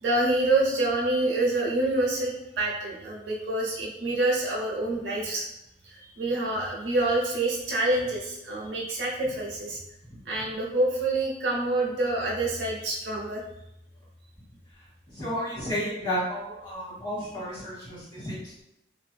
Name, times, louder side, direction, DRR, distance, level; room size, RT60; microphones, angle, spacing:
voice 1, 0.0-5.4 5.8-9.8 10.2-13.4, right 2 dB, 75° right, -2 dB, 0.7 m, -27 dB
voice 2, 15.1-18.6, equal, 25° left, -8 dB, 1.2 m, -32 dB
2.6 x 2.5 x 2.2 m, 0.88 s
head